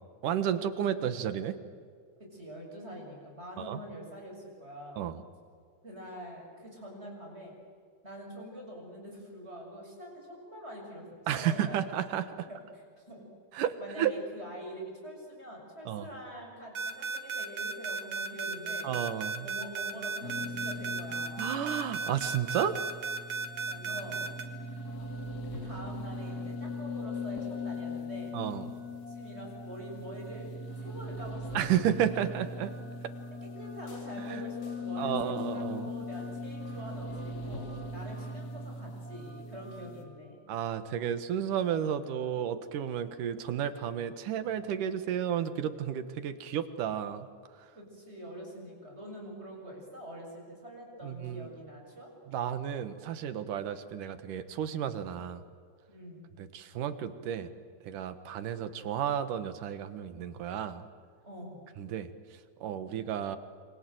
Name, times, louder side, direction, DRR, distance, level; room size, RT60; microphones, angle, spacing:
voice 1, 0.2-1.6 3.6-3.8 5.0-5.2 11.3-12.5 13.5-14.1 15.9-16.1 18.8-19.5 21.4-22.8 28.3-28.7 31.5-32.7 34.2-34.4 35.0-35.9 40.5-47.3 47.6-47.7 51.0-51.5 52.3-55.4 56.4-57.5 57.8-60.9 61.8-62.1 62.6-63.4, right 9 dB, 90° right, 11 dB, 3.0 m, -32 dB
voice 2, 2.2-5.0 5.8-7.6 8.0-11.8 12.5-12.6 13.0-13.2 13.5-18.9 19.4-21.5 23.7-24.2 25.0-25.1 25.5-28.3 29.1-31.6 33.4-40.4 47.7-52.1 55.9-56.2 61.2-61.6, equal, 20° right, 0 dB, 7.3 m, -45 dB
sound 1, 16.8-24.4, right 4 dB, 70° right, 3.5 m, -34 dB
sound 2, 20.2-40.0, left 2 dB, 35° left, 2.5 m, -40 dB
28.0 x 25.0 x 7.9 m, 2.1 s
omnidirectional pair, 3.6 m